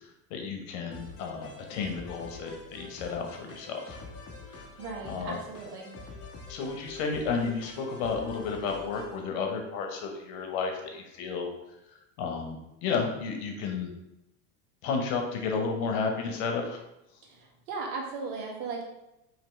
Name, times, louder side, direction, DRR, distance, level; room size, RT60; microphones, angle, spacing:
voice 1, 0.3-4.0 5.1-5.4 6.5-11.5 12.2-13.9 14.8-16.8, left 5 dB, 65° left, 3 dB, 1.1 m, -32 dB
sound 1, 0.9-9.2, left 4 dB, 30° left, 1.0 m, -46 dB
voice 2, 4.8-5.9 17.3-18.8, right 4 dB, 60° right, 0 dB, 1.4 m, -37 dB
4.4 x 3.2 x 3.1 m, 0.90 s
hypercardioid pair, 90°, 45 cm